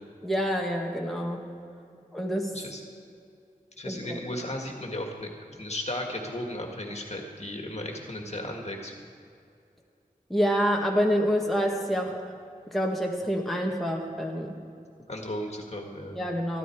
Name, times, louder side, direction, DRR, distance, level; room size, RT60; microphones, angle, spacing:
voice 1, 0.2-1.4 2.1-2.5 3.8-4.2 10.3-12.2 12.7-14.5 16.2-16.6, equal, ahead, 0 dB, 1.6 m, -27 dB
voice 2, 2.5-2.8 3.8-8.9 15.1-16.2, left 1 dB, 50° left, 2 dB, 2.0 m, -35 dB
14.5 x 14.0 x 4.7 m, 2.4 s
wide cardioid pair, 50°, 15 cm